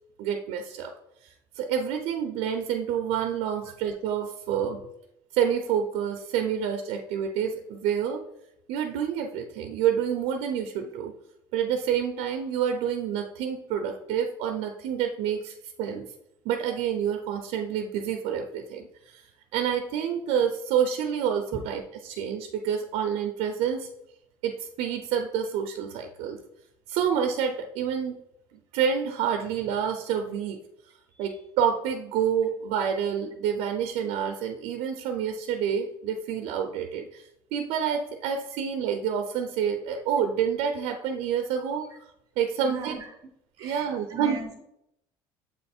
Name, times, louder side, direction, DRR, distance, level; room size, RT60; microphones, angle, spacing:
voice 1, 0.2-0.9 1.2-4.8 5.3-8.2 8.7-11.1 11.5-16.0 16.4-23.9 24.4-26.4 26.9-28.2 28.7-30.6 31.2-41.9 42.4-42.9 43.6-44.4, right 8 dB, 70° right, 5 dB, 0.6 m, -28 dB
voice 2, 42.6-43.1 43.6-44.6, right 4 dB, 35° right, 4 dB, 0.7 m, -39 dB
7.5 x 3.2 x 4.3 m, 0.80 s
cardioid pair, 130°, 10 cm